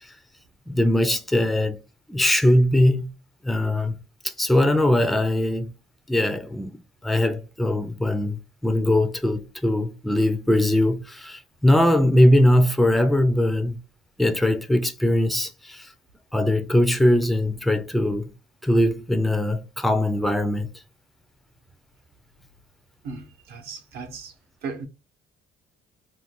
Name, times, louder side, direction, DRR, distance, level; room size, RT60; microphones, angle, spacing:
voice 1, 0.7-1.8 2.1-3.1 3.4-4.0 4.2-5.7 6.1-6.7 7.0-13.8 14.2-15.9 16.3-18.3 18.6-20.7, left 1 dB, ahead, 0.3 m, -21 dB
voice 2, 23.0-24.3 24.6-24.9, right 4 dB, 70° right, 0.8 m, -36 dB
2.5 x 2.2 x 3.6 m
cardioid pair, 110°, 17 cm